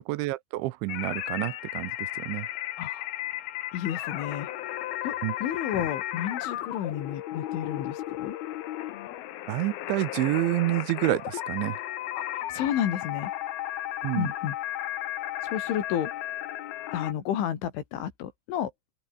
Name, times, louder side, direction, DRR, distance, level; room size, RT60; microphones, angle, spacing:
voice 1, 0.1-2.5 5.2-5.3 9.5-11.8 14.0-14.3, right 19 dB, 85° right, 3.1 m, -28 dB
sound 1, 0.9-17.1, left 14 dB, 65° left, 2.7 m, -34 dB
voice 2, 3.7-4.5 5.0-5.2 5.4-8.4 12.2-12.3 12.5-13.3 14.2-14.6 15.4-16.1 16.9-18.7, left 10 dB, 80° left, 5.1 m, -31 dB
open air
omnidirectional pair, 5.4 m